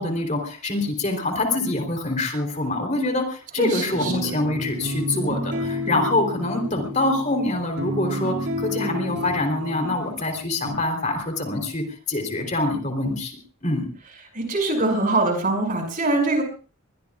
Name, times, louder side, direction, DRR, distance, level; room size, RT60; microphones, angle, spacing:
voice 1, 0.0-13.9, left 2 dB, 35° left, 4 dB, 3.6 m, -25 dB
voice 2, 3.6-4.3 14.3-16.4, right 2 dB, 40° right, 4 dB, 5.7 m, -23 dB
sound 1, 3.9-10.2 10.6-10.7, left 1 dB, 55° right, 5.2 m, -30 dB
23.5 x 21.5 x 2.4 m, 0.38 s
head